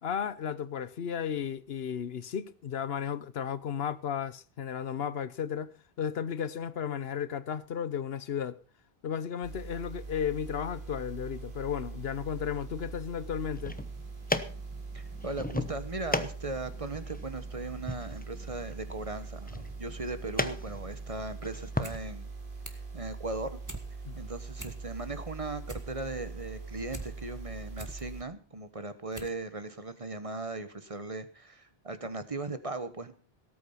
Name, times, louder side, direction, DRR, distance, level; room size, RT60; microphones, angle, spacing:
voice 1, 0.0-5.7 6.0-8.6 9.0-13.7 24.0-24.2, left 8 dB, 75° left, 1.0 m, -34 dB
sound 1, 9.4-28.2, right 4 dB, 55° right, 2.1 m, -42 dB
sound 2, 13.4-21.9, left 1 dB, 10° left, 0.9 m, -37 dB
voice 2, 14.9-22.3 22.7-23.6 24.1-33.1, right 2 dB, 35° right, 1.2 m, -38 dB
sound 3, 21.8-22.0 22.3-22.9 23.3-23.9 24.2-24.3 24.5-25.1 25.4-27.1 27.5-28.0 28.6-28.7 29.1-29.4 29.7-29.8, right 2 dB, 15° right, 1.7 m, -43 dB
18.0 x 8.8 x 5.6 m
omnidirectional pair, 1.0 m